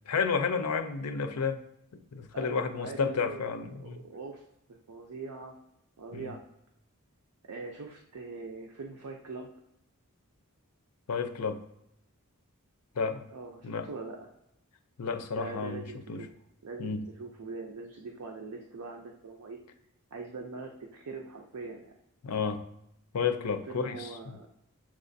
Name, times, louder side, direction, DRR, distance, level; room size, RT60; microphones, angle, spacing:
voice 1, 0.1-1.6 1.9-4.0 6.1-6.3 11.1-11.6 13.0-13.2 13.6-13.9 15.0-15.8 16.1-16.2 16.8-17.1 22.2-22.6 23.1-24.4, left 5 dB, 85° left, 8 dB, 0.5 m, -31 dB
voice 2, 2.3-4.4 4.7-5.6 6.0-6.4 7.4-9.5 13.3-14.3 15.3-16.3 16.6-19.6 20.1-22.0 23.7-24.5, right 3 dB, 85° right, 2 dB, 0.5 m, -42 dB
7.2 x 2.4 x 2.6 m, 0.80 s
head